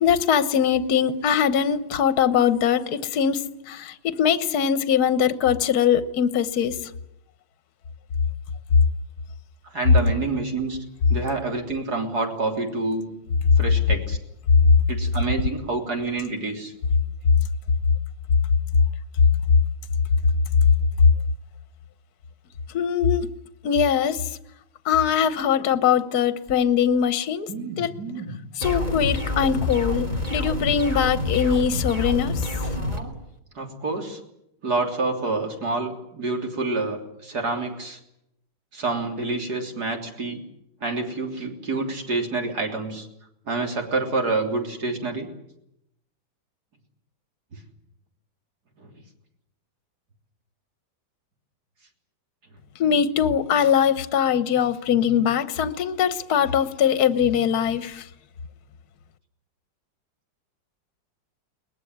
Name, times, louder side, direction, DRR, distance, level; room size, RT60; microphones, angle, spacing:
voice 1, 0.0-6.8 22.7-23.3 23.6-24.3 24.8-27.5 27.8-27.9 28.6-32.4 52.8-58.1, left 8 dB, 55° left, 12 dB, 1.5 m, -22 dB
voice 2, 9.7-10.8 11.1-13.0 13.6-14.2 14.9-16.7 27.5-28.3 32.8-33.2 33.6-34.2 34.6-38.0 38.7-40.4 40.8-43.1 43.5-45.3 48.8-48.9, right 3 dB, 55° right, 3 dB, 3.9 m, -28 dB
sound 1, 28.6-33.0, left 2 dB, 20° right, 2.8 m, -27 dB
22.0 x 20.0 x 9.5 m, 0.81 s
omnidirectional pair, 2.1 m